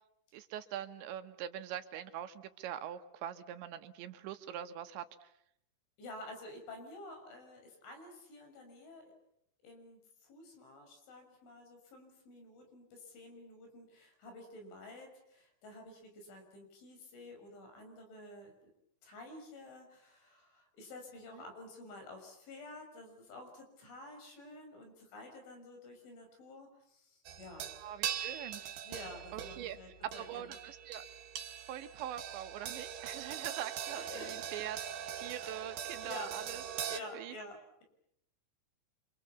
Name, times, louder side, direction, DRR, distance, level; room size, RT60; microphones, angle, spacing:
voice 1, 0.3-5.3 21.3-21.4 27.8-28.6 29.3-29.8 30.0-31.1 31.7-34.8 35.2-37.4, right 11 dB, 80° right, 9 dB, 3.6 m, -43 dB
voice 2, 6.0-9.1 9.6-18.5 19.0-27.7 28.9-30.5 34.0-34.3 36.0-36.3 36.9-37.8, left 2 dB, 90° left, 4 dB, 8.6 m, -50 dB
sound 1, 27.3-37.0, right 9 dB, 60° right, 3.1 m, -42 dB
27.5 x 27.0 x 7.2 m, 0.75 s
omnidirectional pair, 5.3 m